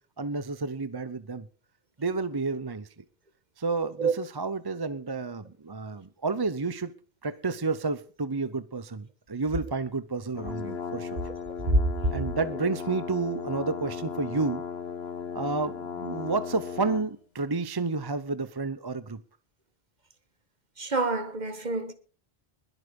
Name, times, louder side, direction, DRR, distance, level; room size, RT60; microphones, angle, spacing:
voice 1, 0.2-1.5 2.0-2.9 3.6-6.9 7.2-11.2 12.1-14.6 15.3-19.2, right 3 dB, 25° right, 0.6 m, -30 dB
sound 1, 10.3-17.1, left 6 dB, 75° left, 1.2 m, -36 dB
voice 2, 20.8-21.9, right 2 dB, 45° right, 1.7 m, -26 dB
21.0 x 8.2 x 5.2 m
omnidirectional pair, 1.1 m